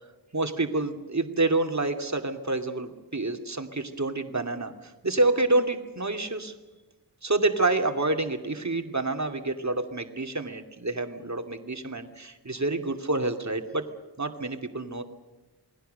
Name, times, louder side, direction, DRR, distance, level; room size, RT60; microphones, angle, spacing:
voice 1, 0.3-4.7 5.0-6.5 7.2-13.9 14.2-15.0, right 2 dB, 45° right, 5 dB, 2.5 m, -28 dB
28.5 x 19.5 x 6.7 m, 1.2 s
wide cardioid pair, 60°, 39 cm